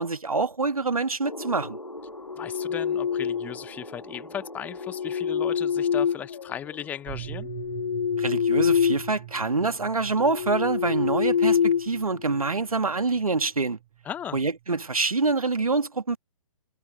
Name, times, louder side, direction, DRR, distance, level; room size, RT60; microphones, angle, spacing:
voice 1, 0.0-1.8 8.2-13.8 14.3-16.2, right 3 dB, 70° right, 1.8 m, -26 dB
sound 1, 1.2-7.0, left 1 dB, 85° left, 2.0 m, -43 dB
sound 2, 2.2-3.7 4.7-6.8 7.3-9.1 9.4-9.6 10.1-12.5, left 7 dB, 45° left, 1.8 m, -26 dB
voice 2, 2.4-7.5 14.0-14.4, left 9 dB, 10° left, 0.8 m, -36 dB
sound 3, 7.1-15.1, right 15 dB, 30° right, 1.5 m, -44 dB
figure-of-eight pair, 135°, 19 cm